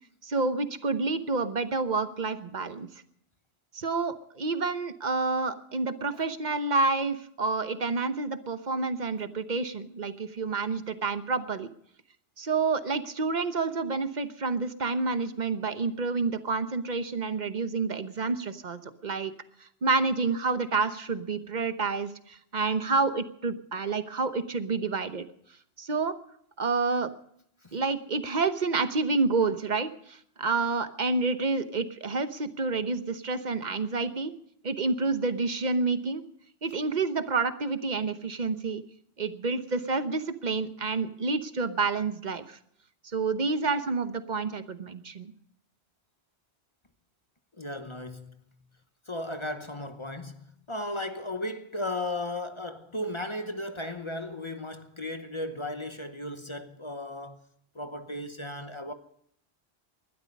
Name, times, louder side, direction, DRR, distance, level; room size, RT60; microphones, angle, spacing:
voice 1, 0.2-2.9 3.7-11.7 12.4-19.3 19.8-25.3 25.8-26.2 26.6-27.1 27.7-34.3 34.6-36.2 36.6-38.8 39.2-42.6 43.1-45.3, right 4 dB, 45° right, 1.1 m, -29 dB
voice 2, 47.6-48.4 49.1-57.4 57.7-58.9, left 1 dB, 30° left, 1.0 m, -35 dB
20.5 x 12.5 x 5.3 m
omnidirectional pair, 1.1 m